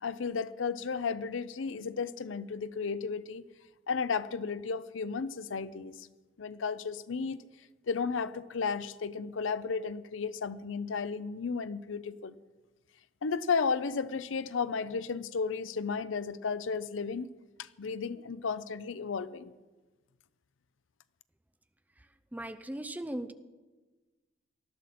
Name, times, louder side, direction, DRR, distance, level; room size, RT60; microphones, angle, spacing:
voice 1, 0.0-3.4 3.9-6.1 6.4-7.4 7.9-12.4 13.2-17.3 17.6-19.5, left 5 dB, 75° left, 0.6 m, -33 dB
voice 2, 22.0-23.3, right 1 dB, 10° right, 0.6 m, -39 dB
19.5 x 13.0 x 4.3 m
head